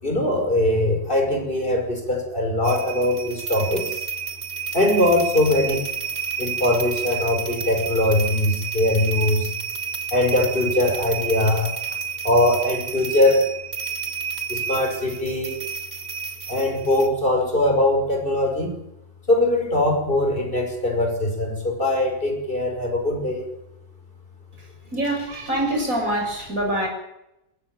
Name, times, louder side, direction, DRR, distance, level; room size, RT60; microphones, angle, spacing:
voice 1, 0.0-4.0 4.7-5.8 6.4-9.5 10.1-11.7 12.2-13.5 14.5-15.6 16.5-18.7 19.3-23.5, left 1 dB, 35° left, 3 dB, 5.9 m, -21 dB
sound 1, 2.6-17.1, right 6 dB, 45° right, 2.4 m, -31 dB
voice 2, 24.5-26.9, right 1 dB, 60° right, 2 dB, 7.7 m, -25 dB
20.5 x 15.5 x 9.3 m, 0.86 s
omnidirectional pair, 1.6 m